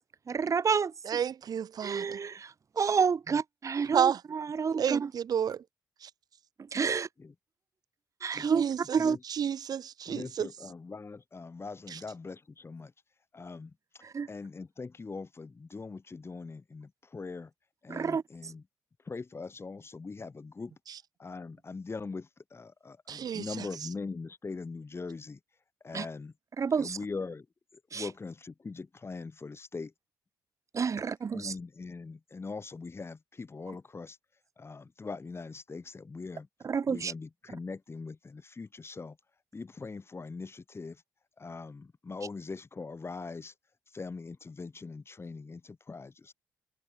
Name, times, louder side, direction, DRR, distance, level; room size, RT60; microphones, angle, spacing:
voice 1, 0.3-0.9 1.8-5.1 6.7-7.1 8.2-9.2 14.0-14.3 17.9-18.2 25.9-26.0 26.6-27.0 27.9-28.0 30.7-31.5 36.6-37.1, right 6 dB, 45° right, 1.7 m, -29 dB
voice 2, 1.0-2.2 3.9-4.2 4.8-5.6 6.0-6.1 8.3-10.5 23.1-23.4, right 8 dB, 60° right, 3.3 m, -31 dB
voice 3, 10.1-12.9 13.3-17.5 17.8-18.6 19.0-20.7 21.2-25.4 25.8-26.3 26.7-27.5 27.7-29.9 31.3-34.2 34.6-36.5 36.8-39.2 39.5-41.0 41.4-43.5 43.9-46.3, left 4 dB, 35° left, 6.6 m, -41 dB
supercardioid pair, 55°, 7 cm